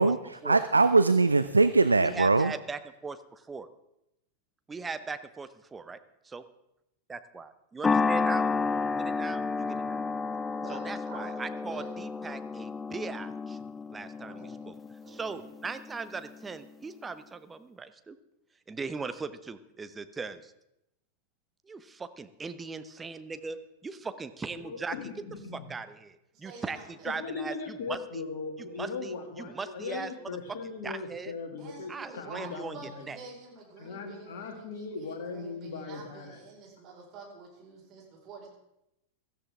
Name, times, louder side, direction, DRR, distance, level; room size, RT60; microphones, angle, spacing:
voice 1, 0.0-2.5, right 3 dB, 80° right, 13 dB, 0.4 m, -22 dB
voice 2, 2.0-3.7 4.7-6.0 6.2-6.4 7.1-8.5 9.0-10.1 10.7-13.6 13.9-14.8 15.1-18.2 18.7-20.5 21.7-25.0 25.5-28.2 28.8-30.1 30.8-31.3 31.9-32.8 33.1-33.2, right 4 dB, 15° right, 11 dB, 0.8 m, -39 dB
sound 1, 7.8-16.3, left 4 dB, 15° left, 0.4 m, -31 dB
voice 3, 10.6-11.9 14.2-14.7 15.0-15.5 26.4-27.2 31.6-38.5, right 3 dB, 35° right, -2 dB, 5.0 m, -48 dB
voice 4, 24.6-25.7 27.1-33.1 33.8-36.4, left 4 dB, 55° left, 3 dB, 2.5 m, -39 dB
16.5 x 13.5 x 3.6 m, 0.85 s
figure-of-eight pair, 90°, 0 cm